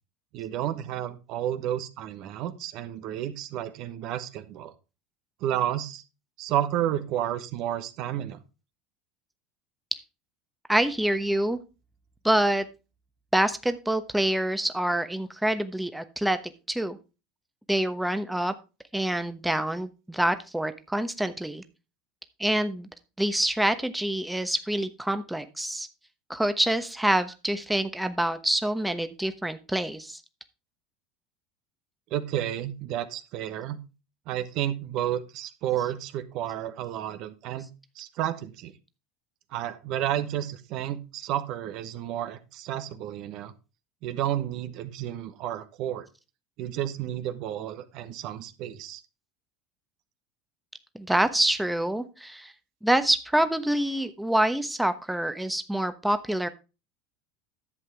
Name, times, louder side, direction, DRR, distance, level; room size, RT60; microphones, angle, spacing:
voice 1, 0.3-4.7 5.4-6.0 6.4-8.4 32.1-33.8 34.3-37.7 38.0-38.7 39.5-43.5 44.0-46.1 46.6-49.0, right 11 dB, 55° right, 10 dB, 1.0 m, -31 dB
voice 2, 10.7-11.6 12.2-12.6 13.3-16.4 16.7-17.0 17.7-18.5 18.9-21.6 22.4-22.9 23.2-25.9 26.3-30.2 50.9-52.5 52.8-56.5, right 1 dB, 5° right, 10 dB, 1.0 m, -26 dB
11.0 x 7.7 x 3.4 m, 0.29 s
hypercardioid pair, 80°, 0 cm